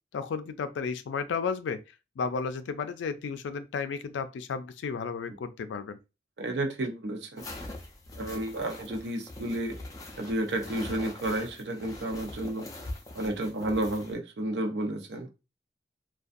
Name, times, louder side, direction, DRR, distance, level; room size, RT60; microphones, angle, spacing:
voice 1, 0.1-1.8 2.2-6.0, left 5 dB, 85° left, 0.3 m, -33 dB
voice 2, 6.4-7.4 8.2-9.7 10.2-12.7 13.1-15.3, right 1 dB, 70° right, 0.6 m, -31 dB
sound 1, 7.4-14.1, left 1 dB, 20° left, 0.4 m, -42 dB
2.4 x 2.2 x 2.5 m
head